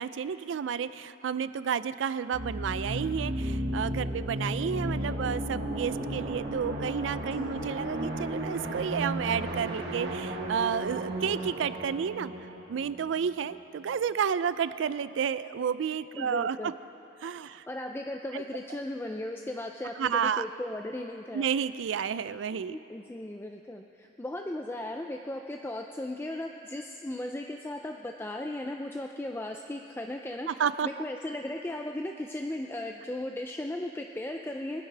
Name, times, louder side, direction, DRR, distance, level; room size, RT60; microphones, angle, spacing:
voice 1, 0.0-12.3 12.7-16.7 17.2-17.6 18.3-18.4 20.0-20.4 21.3-22.8 30.5-30.9, right 7 dB, 85° right, 15 dB, 0.4 m, -31 dB
sound 1, 2.3-13.9, right 1 dB, 65° right, 1.2 m, -34 dB
voice 2, 16.2-16.7 17.7-21.5 22.6-30.5 30.8-34.8, left 1 dB, 10° left, 3 dB, 0.3 m, -36 dB
22.5 x 10.5 x 3.3 m, 2.8 s
head